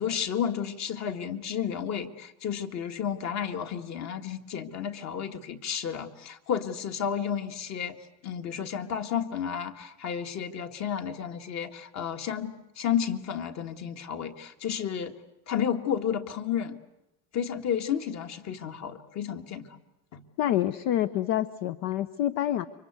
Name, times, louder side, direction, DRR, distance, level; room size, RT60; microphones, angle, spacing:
voice 1, 0.0-8.0 8.2-15.1 15.5-16.8 17.3-19.8 20.1-20.2, left 8 dB, 40° left, 7 dB, 2.0 m, -32 dB
voice 2, 20.4-22.7, left 12 dB, 55° left, 12 dB, 1.0 m, -27 dB
29.0 x 24.5 x 8.3 m, 0.90 s
supercardioid pair, 125°, 42 cm